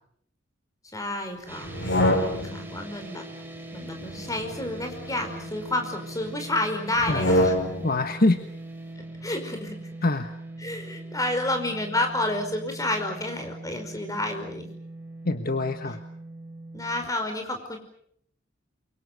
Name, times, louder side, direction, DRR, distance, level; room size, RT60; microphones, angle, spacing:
voice 1, 0.9-3.2 3.7-7.5 9.2-9.9 10.6-14.7 16.7-17.8, left 1 dB, 20° left, 5 dB, 5.2 m, -30 dB
sound 1, 1.5-17.1, right 2 dB, 10° right, 5.0 m, -41 dB
sound 2, 1.6-2.7 4.0-5.6 7.0-8.0, left 1 dB, 85° left, 6.1 m, -26 dB
voice 2, 7.8-8.4 10.0-10.3 15.2-16.0, left 2 dB, 50° left, 7 dB, 1.4 m, -24 dB
28.5 x 24.0 x 6.9 m, 0.68 s
head